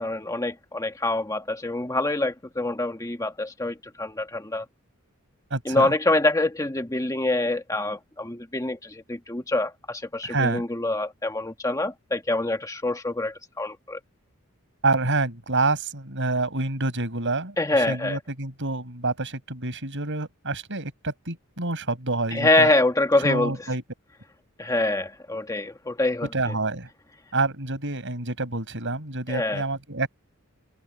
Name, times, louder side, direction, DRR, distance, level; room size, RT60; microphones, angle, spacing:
voice 1, 0.0-4.6 5.6-14.0 17.6-18.2 22.3-23.5 24.6-26.5 29.3-29.6, left 2 dB, 15° left, 1.5 m, -25 dB
voice 2, 5.5-5.9 10.2-10.6 14.8-22.7 23.2-23.8 26.3-26.9 27.3-30.1, right 3 dB, 60° right, 7.1 m, -27 dB
open air
head